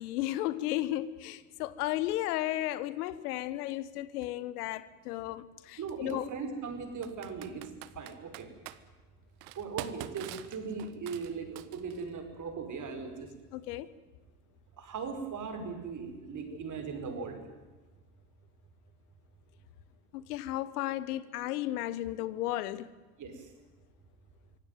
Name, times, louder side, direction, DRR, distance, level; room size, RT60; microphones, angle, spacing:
voice 1, 0.0-6.3 13.5-13.9 20.1-22.9, left 15 dB, 75° left, 1.2 m, -34 dB
Computer keyboard, 4.2-4.3 5.9-6.1 7.0-8.8 9.4-12.1, right 15 dB, 65° right, 1.5 m, -44 dB
voice 2, 5.8-8.5 9.6-13.3 14.8-17.4 23.2-23.5, right 5 dB, 40° right, 5.7 m, -39 dB
25.5 x 16.5 x 9.4 m
hypercardioid pair, 85°, 47 cm